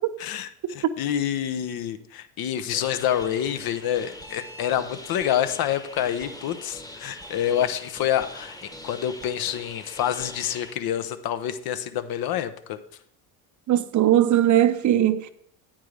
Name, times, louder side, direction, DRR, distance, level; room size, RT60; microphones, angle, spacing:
voice 1, 0.7-8.6 8.8-12.8, left 10 dB, 55° left, 0.9 m, -27 dB
sound 1, 2.7-10.7, left 1 dB, 10° left, 1.1 m, -42 dB
voice 2, 13.7-15.3, right 12 dB, 40° right, 0.7 m, -19 dB
8.9 x 8.9 x 3.4 m
hypercardioid pair, 70°, 44 cm